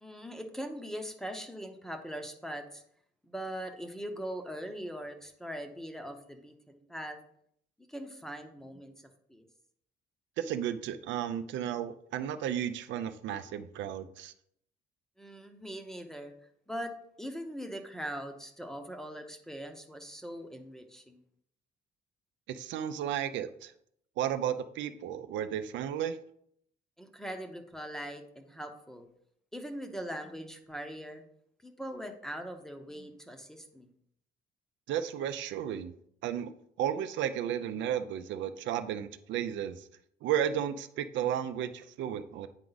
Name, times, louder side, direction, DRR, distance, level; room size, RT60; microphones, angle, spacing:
voice 1, 0.0-2.8 3.2-7.2 7.9-8.9 9.3-9.4 15.2-16.3 16.7-16.9 17.2-21.2 27.0-29.1 29.5-31.2 31.6-33.9, equal, ahead, 5 dB, 0.7 m, -41 dB
voice 2, 10.4-14.3 22.5-23.7 24.2-26.2 34.9-35.9 36.2-36.5 36.8-39.8 40.2-42.5, right 10 dB, 85° right, 10 dB, 0.6 m, -33 dB
9.0 x 4.8 x 4.0 m, 0.69 s
cardioid pair, 170°, 19 cm